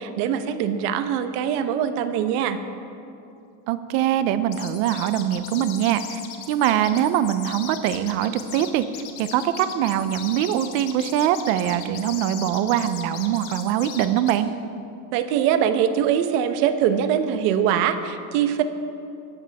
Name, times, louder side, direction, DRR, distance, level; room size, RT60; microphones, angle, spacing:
voice 1, 0.0-2.6 15.1-18.6, right 9 dB, 85° right, 9 dB, 1.1 m, -22 dB
voice 2, 3.7-6.2 6.5-8.8 9.2-14.5, right 11 dB, 60° right, 11 dB, 0.7 m, -23 dB
sound 1, 4.5-14.4, left 9 dB, 60° left, 1.7 m, -38 dB
19.5 x 14.0 x 3.5 m, 2.5 s
cardioid pair, 175°, 45 cm